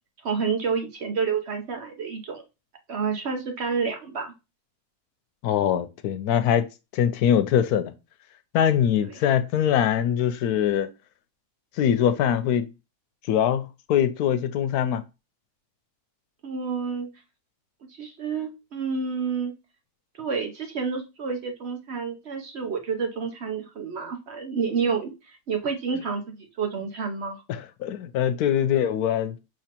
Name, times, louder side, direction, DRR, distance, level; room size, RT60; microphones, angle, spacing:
voice 1, 0.2-2.4 2.9-4.3 9.0-9.2 16.4-17.2 17.9-19.5 20.1-27.4, right 5 dB, 55° right, 0.9 m, -29 dB
voice 2, 5.4-6.7 6.9-7.9 8.5-10.9 11.8-12.7 13.3-13.6 13.9-15.0 27.5-29.4, left 9 dB, 90° left, 1.1 m, -22 dB
6.0 x 3.1 x 2.9 m
omnidirectional pair, 1.6 m